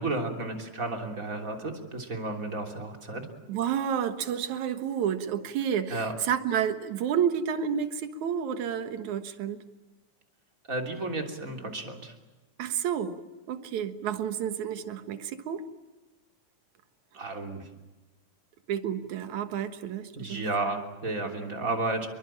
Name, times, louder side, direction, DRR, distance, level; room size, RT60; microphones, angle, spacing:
voice 1, 0.0-3.3 5.9-6.1 10.7-12.1 17.1-17.7 20.1-22.1, right 2 dB, 25° right, 3 dB, 3.4 m, -32 dB
voice 2, 3.5-9.7 12.6-13.2 13.5-15.6 18.7-20.4, right 8 dB, 75° right, 9 dB, 2.8 m, -30 dB
27.5 x 23.0 x 8.9 m, 1.2 s
omnidirectional pair, 3.4 m